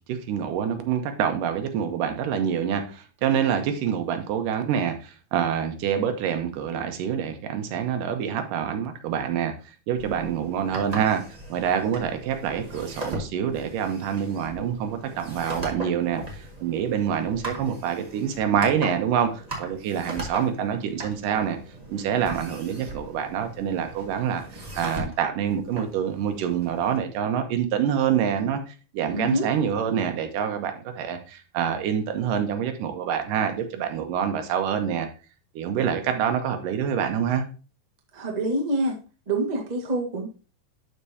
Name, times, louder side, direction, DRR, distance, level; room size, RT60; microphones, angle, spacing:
voice 1, 0.1-9.5 9.9-11.2 11.5-21.6 21.9-35.1 35.6-37.4, right 8 dB, 85° right, 2.6 m, -26 dB
sound 1, 10.0-27.0, right 1 dB, 20° right, 0.9 m, -39 dB
voice 2, 29.1-29.5 38.1-39.0 39.3-40.3, right 1 dB, 60° right, 0.4 m, -26 dB
11.5 x 4.7 x 2.8 m
omnidirectional pair, 3.8 m